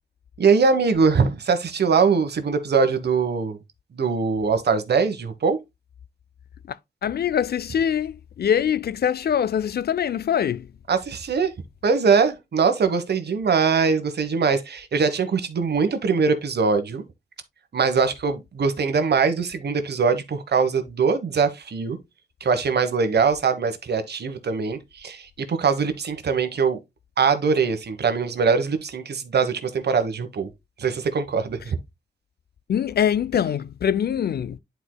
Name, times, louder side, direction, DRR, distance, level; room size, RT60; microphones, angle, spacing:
voice 1, 0.4-3.6 3.9-5.6 10.9-11.5 11.8-17.0 17.7-22.0 22.4-26.8 27.2-30.5 30.8-31.8, right 5 dB, 65° right, 1.2 m, -22 dB
voice 2, 7.0-10.7 32.7-34.6, left 8 dB, 60° left, 0.5 m, -23 dB
11.0 x 4.6 x 2.2 m
wide cardioid pair, 115°, 18 cm